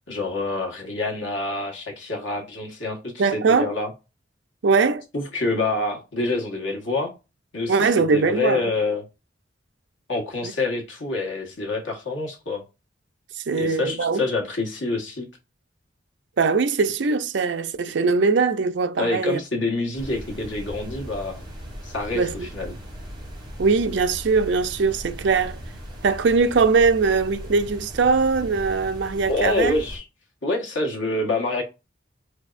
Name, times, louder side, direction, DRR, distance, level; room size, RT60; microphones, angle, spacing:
voice 1, 0.1-3.9 5.1-7.1 7.5-9.0 10.1-12.6 13.5-15.3 19.0-21.4 21.8-22.8 29.3-30.0 30.4-31.6, left 2 dB, 90° left, 1.4 m, -27 dB
voice 2, 3.2-3.7 4.6-5.1 7.7-8.7 10.4-10.5 13.4-14.2 16.4-19.4 22.1-22.5 23.6-25.6 26.0-29.7, right 4 dB, 70° right, 0.5 m, -21 dB
sound 1, 20.0-30.0, equal, 20° right, 1.4 m, -38 dB
4.5 x 3.4 x 2.5 m
head